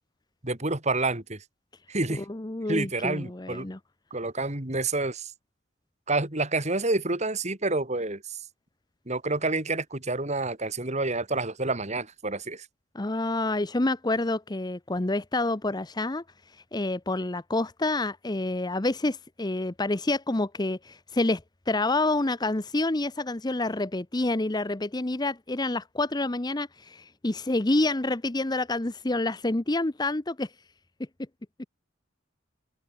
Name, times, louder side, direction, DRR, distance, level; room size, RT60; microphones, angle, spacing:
voice 1, 0.4-1.4 1.9-2.3 2.7-3.7 4.1-5.3 6.1-8.4 9.1-12.7, right 2 dB, 35° right, 2.9 m, -28 dB
voice 2, 2.2-3.8 12.9-16.2 16.7-30.5, left 2 dB, 20° left, 0.8 m, -28 dB
head